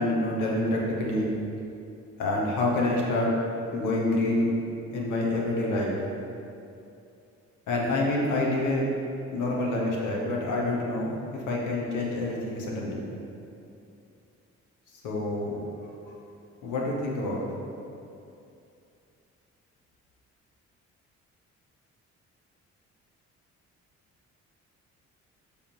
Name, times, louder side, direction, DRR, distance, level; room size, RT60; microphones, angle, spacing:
voice 1, 0.0-1.3 2.2-3.3 3.7-4.5 4.9-6.0 7.7-8.9 9.3-13.0 15.0-15.6 16.6-17.4, left 2 dB, 80° left, -3 dB, 1.2 m, -27 dB
6.7 x 3.6 x 4.5 m, 2.7 s
cardioid pair, 90°, 30 cm